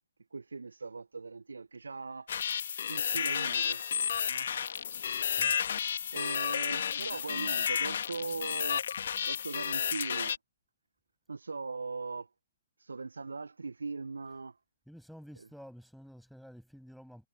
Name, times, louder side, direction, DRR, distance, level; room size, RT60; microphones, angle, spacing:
voice 1, 0.3-2.5 2.9-3.8 4.2-4.5 6.1-8.8 9.3-10.4 11.3-12.3 12.8-14.6, right 4 dB, 75° right, 1.3 m, -40 dB
sound 1, 2.3-10.4, left 8 dB, 60° left, 2.1 m, -32 dB
voice 2, 14.9-17.3, equal, ahead, 7.9 m, -51 dB
figure-of-eight pair, 125°, 0 cm